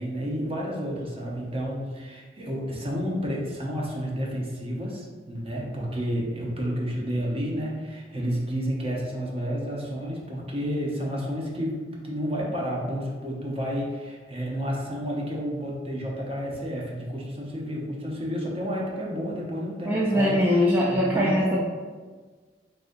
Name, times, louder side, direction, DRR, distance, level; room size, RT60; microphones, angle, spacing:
voice 1, 0.0-20.4 20.9-21.5, equal, 35° right, -3 dB, 0.8 m, -30 dB
voice 2, 19.9-21.6, equal, 10° right, -6 dB, 0.3 m, -22 dB
3.9 x 3.8 x 2.6 m, 1.5 s
head